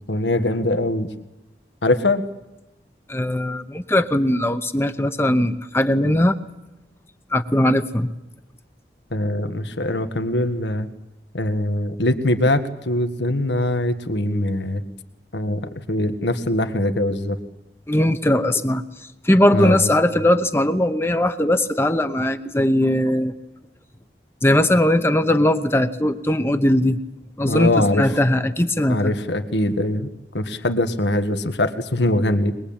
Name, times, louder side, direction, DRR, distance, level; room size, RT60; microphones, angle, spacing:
voice 1, 0.1-1.1 1.8-2.2 9.1-10.9 11.3-14.8 15.3-17.4 19.5-19.9 27.4-28.1 28.9-30.1 30.3-32.5, left 1 dB, 85° left, 9 dB, 1.7 m, -22 dB
voice 2, 3.1-6.4 7.3-8.1 17.9-18.8 19.2-23.3 24.4-27.0 27.4-29.1, left 1 dB, 15° left, 9 dB, 0.8 m, -19 dB
22.0 x 22.0 x 8.8 m, 0.97 s
head